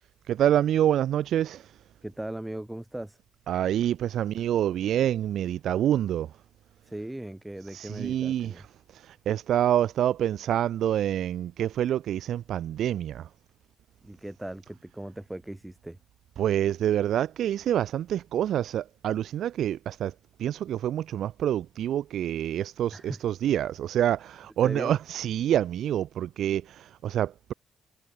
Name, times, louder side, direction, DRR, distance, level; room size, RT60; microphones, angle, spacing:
voice 1, 0.3-1.7 3.5-6.3 7.7-8.7 8.9-13.3 16.4-20.1 20.4-27.5, right 11 dB, 70° right, 1.0 m, -27 dB
voice 2, 2.0-3.2 6.8-8.6 14.0-16.0 22.9-23.2 24.6-25.0, right 1 dB, 10° right, 1.7 m, -38 dB
cardioid pair, 90°, 0 cm